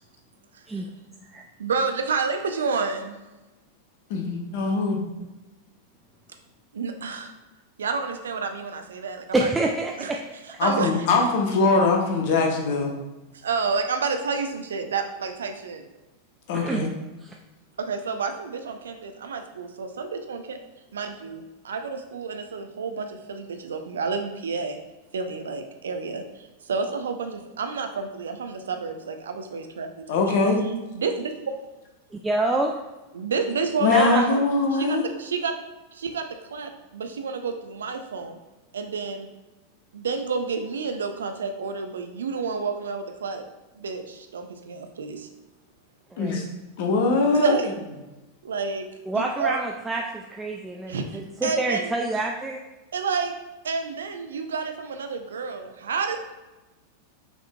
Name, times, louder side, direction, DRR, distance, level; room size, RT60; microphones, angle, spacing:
voice 1, 1.6-3.2 6.7-7.3 7.8-9.5 10.0-10.1 10.6-10.9 13.4-15.8 17.8-20.6 20.9-24.8 25.1-30.0 30.9-31.3 33.1-34.4 34.7-35.6 35.9-38.4 38.7-39.3 39.9-43.4 43.8-45.3 47.3-47.7 48.4-48.9 49.1-49.6 50.9-51.1 51.4-51.9 52.9-53.3 53.6-56.2, right 4 dB, 65° right, 6 dB, 0.5 m, -29 dB
voice 2, 4.1-5.0 10.6-12.9 16.5-16.9 30.1-30.7 33.8-35.1 46.2-46.4 46.8-47.6, left 3 dB, 50° left, 1 dB, 0.9 m, -22 dB
voice 3, 9.3-10.4 16.6-16.9 17.2-17.4 32.2-32.7 33.9-34.2 46.1-46.4 49.1-52.6, right 2 dB, 10° right, 0 dB, 0.4 m, -27 dB
6.0 x 3.6 x 2.3 m, 1.1 s
figure-of-eight pair, 90°, 0 cm